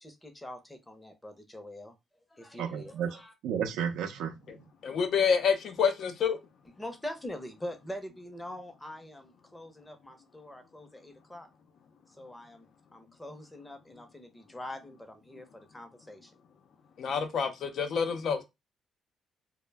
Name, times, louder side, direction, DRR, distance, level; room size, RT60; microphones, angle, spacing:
voice 1, 0.0-1.9 2.3-3.3 6.8-11.5 12.2-16.3, left 1 dB, 10° left, 0.7 m, -44 dB
voice 2, 2.6-4.7, right 8 dB, 90° right, 0.5 m, -33 dB
voice 3, 4.8-6.4 17.0-18.4, left 6 dB, 65° left, 0.5 m, -27 dB
2.1 x 2.0 x 3.3 m
cardioid pair, 90°, 0 cm